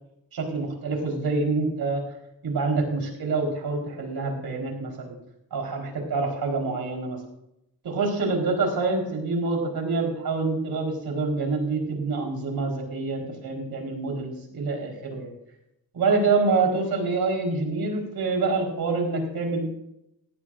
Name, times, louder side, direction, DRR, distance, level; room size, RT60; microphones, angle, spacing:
voice 1, 0.3-2.0 2.4-5.1 5.5-7.2 7.8-15.3 15.9-19.7, right 3 dB, 75° right, 1 dB, 4.4 m, -26 dB
17.0 x 17.0 x 2.6 m, 0.81 s
cardioid pair, 65°, 36 cm